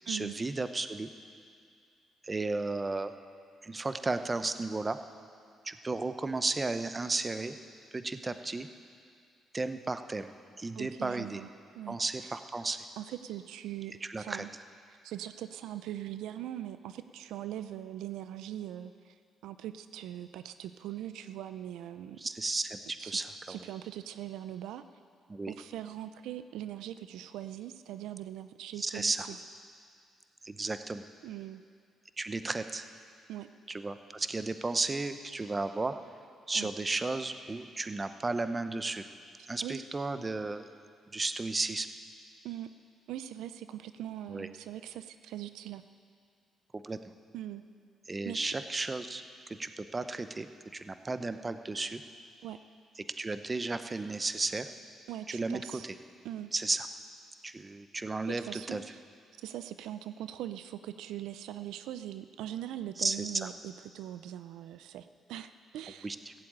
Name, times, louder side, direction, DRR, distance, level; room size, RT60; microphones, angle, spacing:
voice 1, 0.1-1.1 2.2-3.1 3.6-5.0 5.6-7.6 7.9-8.7 9.5-11.4 11.9-12.8 14.0-14.4 22.2-23.6 25.3-25.5 28.8-29.3 30.4-31.0 32.2-32.9 33.7-36.0 36.5-39.1 39.5-40.7 41.1-41.9 44.3-44.5 46.7-47.0 48.1-49.2 49.6-52.0 53.2-54.7 55.3-55.9 56.5-56.9 57.4-58.8 63.0-63.5 66.0-66.3, right 3 dB, 25° right, 10 dB, 0.7 m, -34 dB
voice 2, 10.8-11.5 11.7-12.3 13.0-14.5 14.9-19.2 19.4-22.2 23.0-23.2 23.5-24.8 25.5-29.4 31.2-31.6 33.3-33.5 36.5-36.7 39.6-39.8 42.4-42.7 43.1-45.8 47.3-47.6 48.3-48.5 52.4-52.6 55.1-55.9 56.2-56.5 58.3-59.0 59.4-66.1, right 12 dB, 90° right, 11 dB, 0.4 m, -41 dB
15.5 x 7.6 x 8.6 m, 2.3 s
cardioid pair, 90°, 0 cm